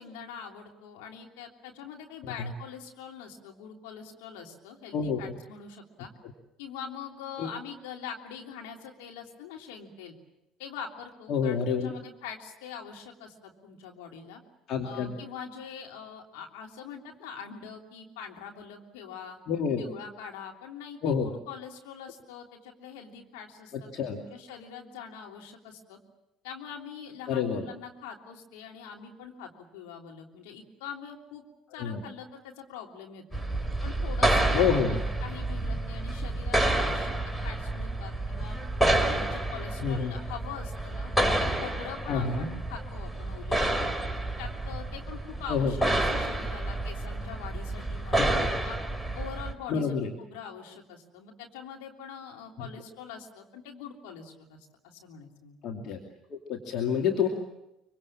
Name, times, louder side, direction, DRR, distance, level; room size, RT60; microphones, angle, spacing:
voice 1, 0.0-6.1 6.6-10.1 10.6-14.4 14.8-19.4 19.8-26.0 26.4-31.4 31.7-33.4 33.8-38.6 39.0-43.9 44.4-48.8 49.1-54.6 54.8-55.6, left 7 dB, 70° left, 1 dB, 3.3 m, -43 dB
voice 2, 11.3-11.9 14.7-15.1 19.5-19.8 21.0-21.3 23.9-24.2 27.3-27.6 31.8-32.0 34.5-35.0 39.8-40.1 42.1-42.5 45.5-45.7 48.2-48.5 49.7-50.1 52.6-52.7 55.6-56.0 56.3-57.3, left 6 dB, 55° left, 2 dB, 2.6 m, -28 dB
sound 1, 33.3-49.5, right 1 dB, 5° left, 3.6 m, -29 dB
25.0 x 24.5 x 7.5 m, 0.93 s
hypercardioid pair, 60°, 0 cm